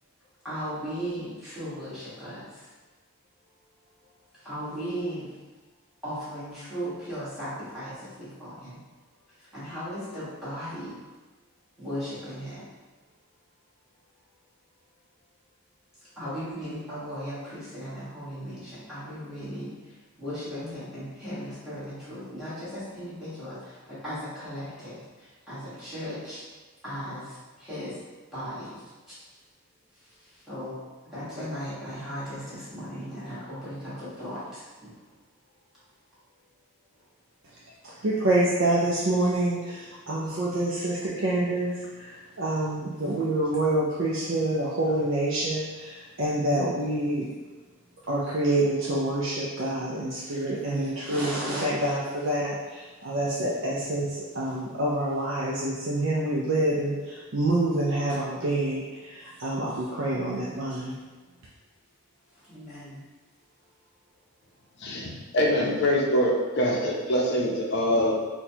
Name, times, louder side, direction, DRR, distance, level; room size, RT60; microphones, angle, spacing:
voice 1, 0.4-2.7 4.3-5.3 6.0-8.8 9.3-11.0 11.8-12.7 16.1-26.5 26.8-28.0 28.3-29.3 29.9-35.1 36.9-37.0 62.3-63.0, equal, ahead, -13 dB, 1.3 m, -37 dB
voice 2, 38.0-47.3 48.1-60.9, right 1 dB, 55° right, -6 dB, 0.4 m, -27 dB
voice 3, 64.8-68.2, equal, 50° left, -2 dB, 0.6 m, -24 dB
4.2 x 2.2 x 2.7 m, 1.3 s
head